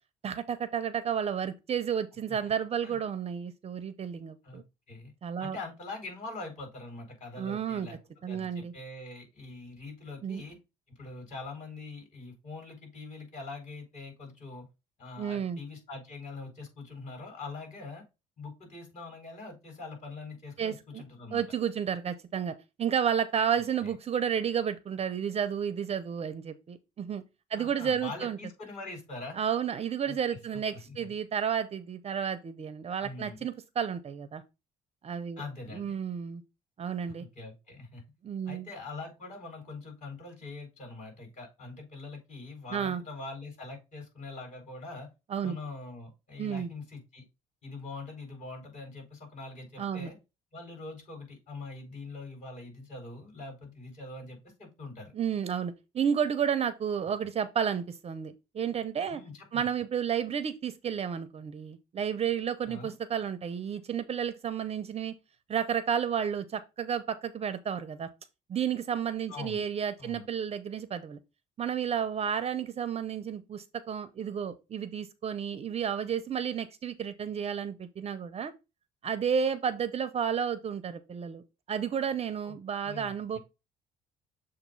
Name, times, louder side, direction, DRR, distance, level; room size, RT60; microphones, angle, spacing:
voice 1, 0.2-4.6 5.2-5.6 7.4-7.9 8.2-8.7 10.2-10.4 15.2-15.6 20.6-21.0 21.3-27.2 27.5-28.4 29.3-34.4 35.0-35.4 35.7-36.4 36.8-37.3 38.2-38.7 42.7-43.0 45.3-45.6 46.4-46.7 49.8-50.1 55.1-59.2 59.5-65.1 65.5-68.1 68.5-71.2 71.6-78.5 79.0-83.4, right 8 dB, 35° right, 0.6 m, -32 dB
voice 2, 5.4-8.0 8.3-10.6 10.9-14.7 15.0-18.0 18.4-21.4 23.8-23.9 27.5-29.4 30.0-31.1 33.0-33.5 35.4-36.0 37.2-38.0 38.5-45.1 45.4-47.2 47.6-50.2 50.5-55.1 57.2-57.3 59.1-59.6 62.6-62.9 69.3-69.6 70.0-70.3 82.4-82.5 82.8-83.4, left 3 dB, 45° left, 4.2 m, -43 dB
7.2 x 2.6 x 5.3 m
cardioid pair, 110°, 17 cm